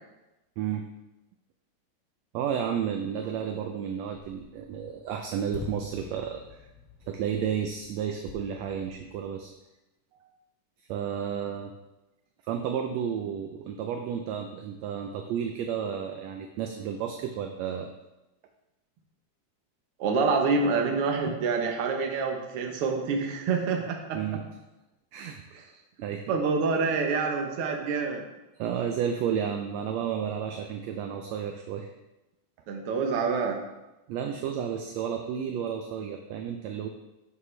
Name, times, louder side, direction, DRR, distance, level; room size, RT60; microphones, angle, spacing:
voice 1, 2.3-6.4 7.1-9.5 10.1-10.3 10.9-11.7 12.5-17.9 24.1-24.5 25.1-25.7 26.0-26.2 28.6-31.9 34.1-36.9, right 8 dB, 80° right, 4 dB, 1.6 m, -32 dB
sound 1, 4.1-9.5, left 5 dB, 60° left, 1.2 m, -46 dB
voice 2, 20.0-24.2 26.3-28.3 32.7-33.6, right 4 dB, 60° right, 2 dB, 1.5 m, -27 dB
8.3 x 7.3 x 3.3 m, 0.98 s
omnidirectional pair, 3.6 m